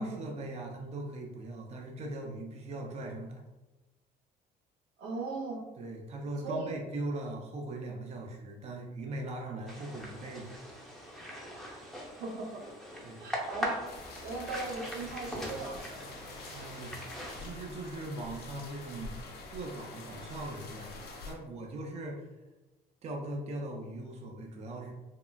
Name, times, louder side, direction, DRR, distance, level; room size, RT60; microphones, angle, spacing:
voice 1, 0.0-3.4 5.8-10.6 13.0-13.2 16.5-16.9 17.4-19.2 19.5-22.3 23.0-24.9, right 2 dB, 40° right, 1 dB, 0.5 m, -40 dB
voice 2, 5.0-5.6 6.4-6.8 12.2-12.6 13.2-13.8 14.2-16.0, right 3 dB, 80° right, 0 dB, 0.7 m, -38 dB
sound 1, 9.7-17.5, equal, ahead, 0.6 m, -41 dB
sound 2, 13.8-21.3, left 3 dB, 70° left, 0.7 m, -46 dB
3.6 x 2.4 x 2.2 m, 1.1 s
cardioid pair, 110°, 17 cm